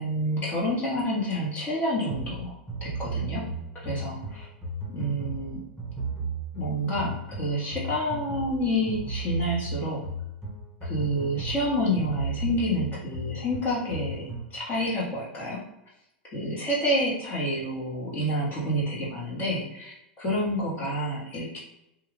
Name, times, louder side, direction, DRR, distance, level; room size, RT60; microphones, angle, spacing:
voice 1, 0.0-3.5 3.7-4.5 4.9-5.6 6.5-10.1 10.8-15.6 16.3-21.6, equal, 30° left, -5 dB, 1.4 m, -28 dB
sound 1, 2.1-14.5, right 3 dB, 10° right, 1.0 m, -35 dB
2.6 x 2.4 x 3.3 m, 0.84 s
hypercardioid pair, 120°, 6 cm